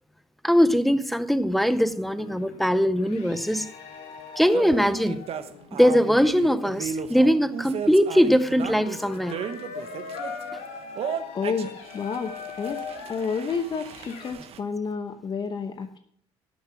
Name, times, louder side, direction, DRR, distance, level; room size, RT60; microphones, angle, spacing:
voice 1, 0.4-3.7 4.4-5.3 5.7-9.4, equal, ahead, 0.7 m, -21 dB
sound 1, 1.8-14.3, left 6 dB, 75° left, 2.2 m, -41 dB
sound 2, 4.5-10.4 11.0-14.6, right 8 dB, 55° right, 1.1 m, -35 dB
voice 2, 11.3-12.3 12.6-12.8 13.1-16.0, left 5 dB, 40° left, 0.9 m, -30 dB
11.5 x 7.5 x 6.0 m
supercardioid pair, 95°, 12 cm